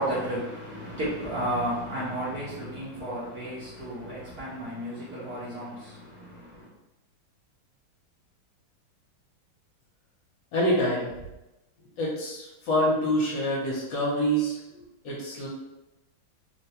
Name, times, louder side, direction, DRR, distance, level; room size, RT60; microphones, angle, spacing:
voice 1, 0.0-6.7, right 1 dB, 55° right, -8 dB, 1.1 m, -33 dB
voice 2, 10.5-11.1 12.0-14.6 15.0-15.5, equal, 65° left, -5 dB, 1.4 m, -26 dB
3.8 x 2.2 x 2.8 m, 0.97 s
omnidirectional pair, 2.3 m